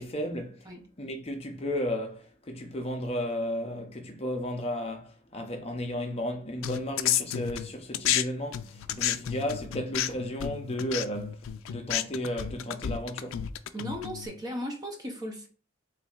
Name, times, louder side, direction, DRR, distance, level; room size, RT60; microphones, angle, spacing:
voice 1, 0.0-0.7 1.0-13.4, equal, 30° left, 0.6 m, -34 dB
sound 1, 6.6-8.2 8.5-14.3, left 11 dB, 75° left, 0.3 m, -31 dB
voice 2, 13.7-15.5, equal, 20° right, 0.6 m, -36 dB
7.2 x 2.6 x 2.4 m
head